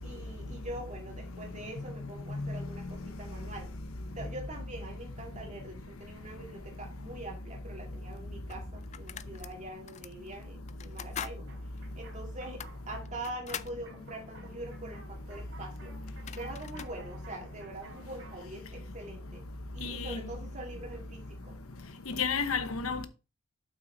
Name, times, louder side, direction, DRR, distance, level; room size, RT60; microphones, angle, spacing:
voice 1, 0.0-3.7 4.2-11.5 12.0-15.9 16.4-19.4 19.7-21.6, right 1 dB, 35° right, 2.1 m, -44 dB
voice 2, 2.3-2.6 19.8-20.2 22.1-23.1, left 5 dB, 80° left, 1.1 m, -32 dB
sound 1, 7.7-7.8 8.5-9.5 9.9-10.1 10.7-11.4 11.8-11.9 12.4-13.8 15.8-15.9 16.1-17.0, left 8 dB, 30° left, 0.4 m, -42 dB
sound 2, 11.5-18.4, right 3 dB, 70° right, 3.4 m, -55 dB
7.7 x 6.0 x 4.2 m
head